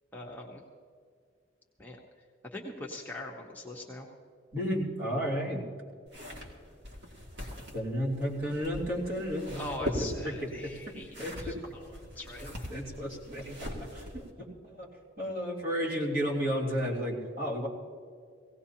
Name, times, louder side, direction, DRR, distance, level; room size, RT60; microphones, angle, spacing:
voice 1, 0.1-0.6 1.8-2.0 2.5-4.1 9.6-12.7, left 1 dB, 10° left, -2 dB, 1.1 m, -42 dB
voice 2, 4.5-5.6 7.7-10.5 11.2-11.5 12.4-13.6 13.9-14.2 14.6-14.9 15.2-17.7, equal, 50° right, -4 dB, 3.2 m, -32 dB
sound 1, 6.1-14.3, equal, 65° right, 2.4 m, -41 dB
18.0 x 17.5 x 2.9 m, 2.2 s
head